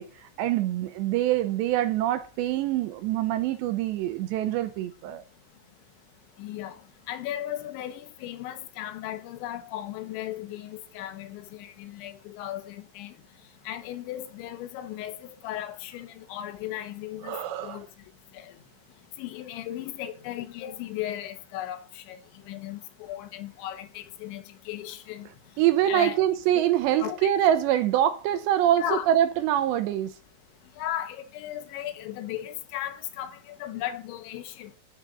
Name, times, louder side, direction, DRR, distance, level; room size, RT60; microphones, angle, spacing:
voice 1, 0.0-5.2 17.2-17.8 25.6-30.1, right 12 dB, 80° right, 2.9 m, -25 dB
voice 2, 6.4-6.8 7.1-13.1 13.7-17.9 18.3-18.5 19.2-22.2 22.5-25.3 25.9-26.2 26.5-26.6 27.0-27.5 28.8-29.1 30.8-34.7, left 12 dB, 75° left, 3.6 m, -36 dB
15.0 x 6.2 x 6.8 m
omnidirectional pair, 5.4 m